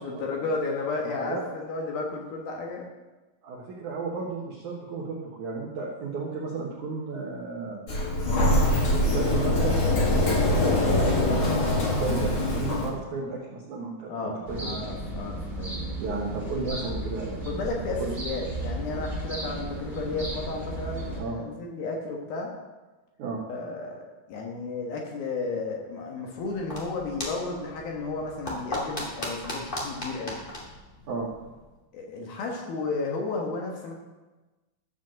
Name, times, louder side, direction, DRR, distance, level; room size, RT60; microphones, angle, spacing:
voice 1, 0.0-2.8 14.1-15.8 16.8-16.9 17.5-22.5 23.5-30.4 31.9-33.9, left 3 dB, 65° left, 0 dB, 2.8 m, -33 dB
voice 2, 1.0-1.4 3.4-7.8 8.9-9.8 10.2-11.7 12.0-14.7 16.0-17.6 18.0-18.1 21.2-21.4 23.2-23.4 31.1-31.3, right 4 dB, 70° right, -3 dB, 1.8 m, -33 dB
Sliding door, 7.9-12.9, left 1 dB, 45° left, 1.7 m, -23 dB
sound 1, 14.4-21.2, right 1 dB, 20° right, 1.2 m, -34 dB
sound 2, 26.3-31.7, left 1 dB, 85° left, 0.4 m, -37 dB
13.0 x 5.1 x 7.5 m, 1.2 s
omnidirectional pair, 5.2 m